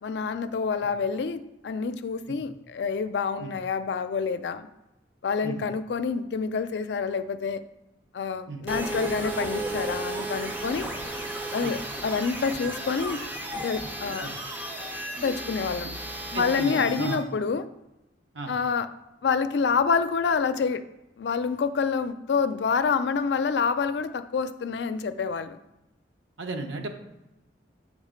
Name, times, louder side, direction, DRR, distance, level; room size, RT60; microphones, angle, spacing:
voice 1, 0.0-4.7 5.2-7.6 8.1-10.9 11.5-13.2 13.5-14.3 15.2-15.9 16.3-17.7 18.5-18.9 19.2-20.8 21.2-25.6, left 5 dB, 65° left, 11 dB, 0.4 m, -27 dB
sound 1, 8.7-17.1, right 1 dB, 10° right, 0.6 m, -34 dB
voice 2, 16.3-17.3 18.3-18.5 26.4-26.9, right 2 dB, 85° right, 4 dB, 0.8 m, -34 dB
6.4 x 3.6 x 5.0 m, 0.95 s
head